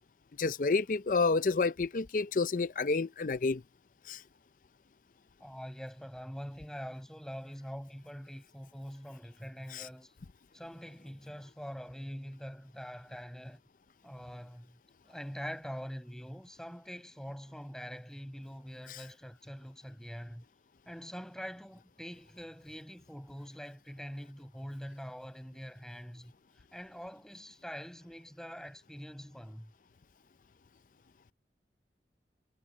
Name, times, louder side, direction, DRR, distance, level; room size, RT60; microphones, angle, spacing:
voice 1, 0.4-3.6 4.1-4.2 9.7-9.8, left 4 dB, 50° left, 0.5 m, -29 dB
voice 2, 5.4-10.1 10.5-13.6 14.0-14.8 15.0-20.4 20.9-26.3 26.7-29.7, equal, 5° left, 7.6 m, -44 dB
head